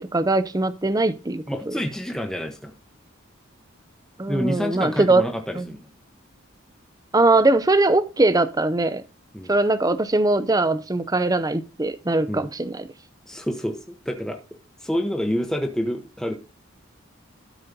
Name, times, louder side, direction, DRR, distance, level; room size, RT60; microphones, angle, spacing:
voice 1, 0.0-1.8 4.2-5.2 5.6-5.7 7.1-9.0 9.5-12.9, right 2 dB, 15° right, 0.6 m, -21 dB
voice 2, 1.5-2.7 4.3-5.9 9.3-9.6 12.3-12.5 13.3-14.4 14.8-16.4, equal, 5° left, 0.9 m, -28 dB
13.0 x 4.3 x 5.2 m
head